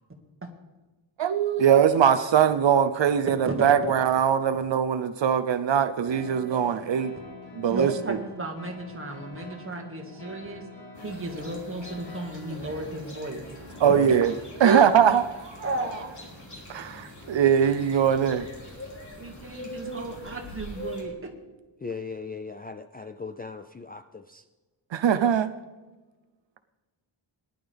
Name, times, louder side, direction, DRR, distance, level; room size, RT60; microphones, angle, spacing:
voice 1, 1.2-7.1 7.5-8.2 13.8-14.3 14.6-15.7 16.7-18.5 24.9-25.5, right 8 dB, 70° right, 11 dB, 0.7 m, -22 dB
sound 1, 6.1-14.4, left 2 dB, 70° left, 4.7 m, -45 dB
voice 2, 7.7-10.6 11.0-13.4 14.6-14.8 15.6-16.1 19.2-21.3, right 2 dB, 25° right, 1 dB, 1.9 m, -33 dB
sound 2, 10.9-21.0, equal, 40° left, 3.2 m, -43 dB
voice 3, 13.8-14.2 21.8-24.4, left 4 dB, 20° left, 8 dB, 0.4 m, -38 dB
18.5 x 11.0 x 3.5 m, 1.2 s
wide cardioid pair, 135°, 46 cm